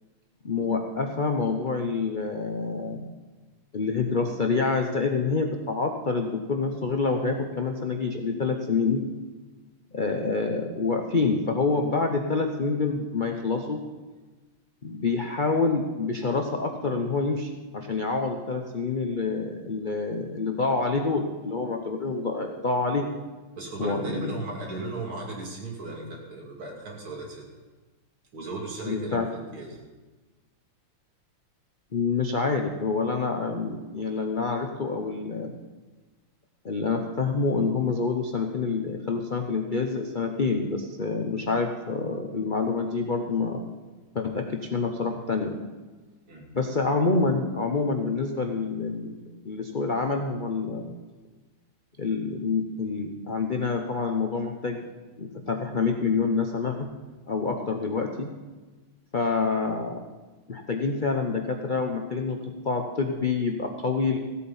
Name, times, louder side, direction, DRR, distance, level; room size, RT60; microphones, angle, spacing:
voice 1, 0.4-3.0 3.7-9.0 9.9-13.8 14.8-23.1 23.8-24.3 28.8-29.3 31.9-35.5 36.6-43.6 44.1-45.6 46.5-50.9 52.0-54.8 55.2-56.9 57.3-58.3 59.1-60.0 60.5-62.4 62.6-64.2, left 4 dB, 85° left, 3 dB, 0.4 m, -27 dB
voice 2, 23.5-27.4 28.3-29.8 46.3-46.5, right 2 dB, 80° right, -2 dB, 3.4 m, -36 dB
16.0 x 8.4 x 5.5 m, 1.3 s
omnidirectional pair, 2.2 m